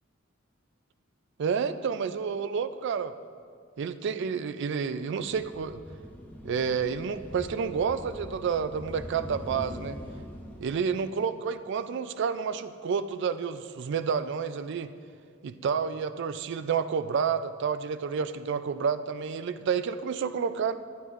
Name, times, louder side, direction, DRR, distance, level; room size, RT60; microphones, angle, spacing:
voice 1, 1.4-3.1 3.8-5.8 6.4-10.0 10.6-14.9 15.4-20.7, right 6 dB, 60° right, 12 dB, 0.3 m, -30 dB
sound 1, 5.3-10.6, equal, 10° left, 0.8 m, -43 dB
9.7 x 9.4 x 2.5 m, 2.1 s
head